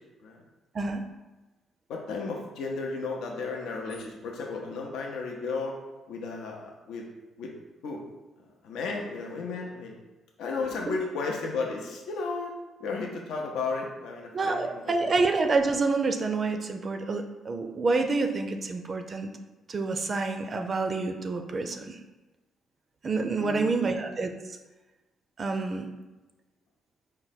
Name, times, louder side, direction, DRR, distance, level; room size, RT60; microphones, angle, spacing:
voice 1, 1.9-5.7 6.1-7.1 7.4-7.5 7.8-8.0 8.6-9.9 10.4-12.5 12.8-14.6 15.1-15.2 23.4-23.9, left 4 dB, 80° left, 0 dB, 0.6 m, -33 dB
voice 2, 14.3-19.3 19.7-22.0 23.0-24.3 25.4-25.9, right 3 dB, 40° right, 6 dB, 0.4 m, -28 dB
4.5 x 2.1 x 4.0 m, 1.1 s
cardioid pair, 90°, 0 cm